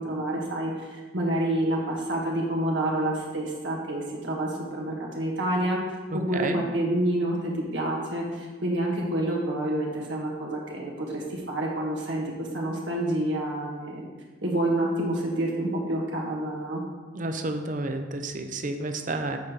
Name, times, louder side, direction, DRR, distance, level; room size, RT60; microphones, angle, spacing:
voice 1, 0.0-5.8 6.1-14.1 14.4-16.8, right 1 dB, 80° right, -2 dB, 1.7 m, -28 dB
voice 2, 6.1-6.6 17.1-19.4, right 2 dB, 45° right, 6 dB, 0.7 m, -31 dB
8.2 x 4.9 x 5.2 m, 1.3 s
head